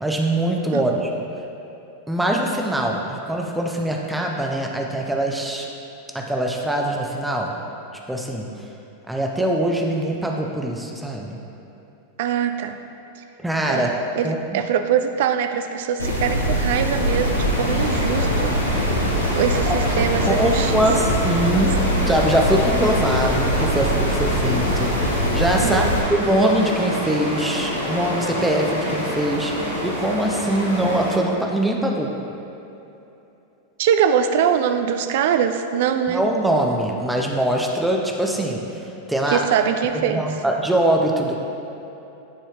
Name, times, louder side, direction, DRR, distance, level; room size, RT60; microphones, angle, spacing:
voice 1, 0.0-1.1 2.1-5.7 6.1-7.5 8.1-8.5 9.1-11.4 13.4-13.9 14.2-14.6 19.7-19.8 20.3-21.8 22.1-32.1 36.1-39.4 40.1-41.4, right 1 dB, 5° right, 0 dB, 0.6 m, -23 dB
voice 2, 12.2-12.8 13.7-18.5 18.8-19.0 19.4-20.9 25.6-25.9 33.8-36.2 39.3-40.2, right 8 dB, 55° right, 8 dB, 0.3 m, -23 dB
sound 1, 16.0-26.0, equal, 80° left, 0.8 m, -23 dB
sound 2, 16.5-31.2, equal, 75° right, 1.0 m, -27 dB
9.8 x 4.2 x 2.4 m, 2.9 s
figure-of-eight pair, 90°, 0 cm